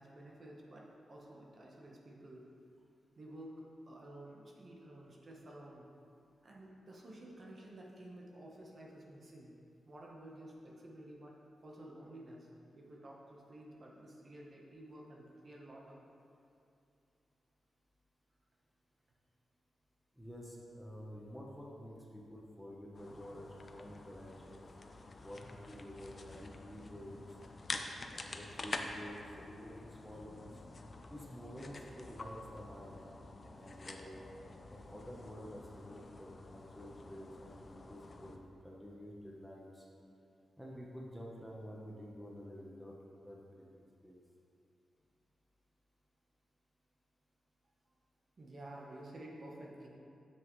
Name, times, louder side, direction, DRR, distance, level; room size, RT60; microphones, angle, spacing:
voice 1, 0.0-2.5 3.2-5.9 6.4-9.5 9.9-11.3 11.6-12.5 12.7-16.0 48.4-49.9, right 1 dB, 40° right, -2 dB, 1.1 m, -52 dB
voice 2, 20.2-24.7 25.2-27.1 28.0-30.5 31.1-33.0 33.5-34.2 34.7-39.8 40.6-43.4 43.7-44.2, equal, ahead, -4 dB, 0.9 m, -50 dB
sound 1, 22.9-38.4, left 3 dB, 35° left, 0.5 m, -48 dB
9.4 x 7.4 x 3.2 m, 2.6 s
wide cardioid pair, 135°, 0 cm